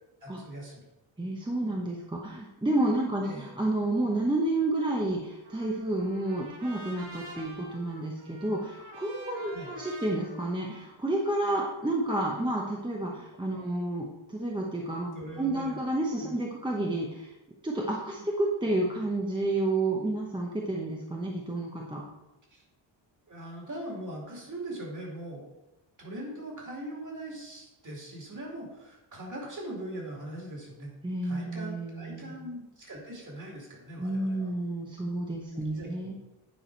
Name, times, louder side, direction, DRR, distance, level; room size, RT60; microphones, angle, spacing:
voice 1, 0.2-0.8 3.2-3.5 9.4-9.7 13.5-13.6 15.1-15.8 16.2-16.3 18.2-18.3 22.5-22.6 23.3-25.4 26.0-30.9 31.2-34.5 35.5-36.2, right 1 dB, 35° right, -1 dB, 2.4 m, -41 dB
voice 2, 1.2-15.1 15.4-17.3 17.6-22.0 31.0-32.3 34.0-36.1, right 2 dB, 10° right, -2 dB, 0.8 m, -30 dB
Trumpet, 5.4-11.7, right 1 dB, 50° right, 1.8 m, -48 dB
9.4 x 4.7 x 4.5 m, 0.97 s
wide cardioid pair, 145°, 50 cm